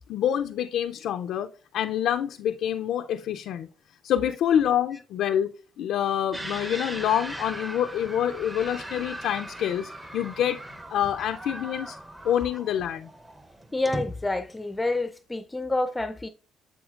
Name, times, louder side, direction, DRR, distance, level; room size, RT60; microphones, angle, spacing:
voice 1, 0.1-1.5 1.7-3.7 4.0-5.5 5.8-10.6 10.9-12.0 12.2-13.1, left 10 dB, 80° left, 0.4 m, -26 dB
sound 1, 6.3-15.0, right 1 dB, 15° right, 0.8 m, -39 dB
voice 2, 13.7-16.3, left 2 dB, 15° left, 0.5 m, -28 dB
8.0 x 7.0 x 2.4 m
cardioid pair, 90°, 0 cm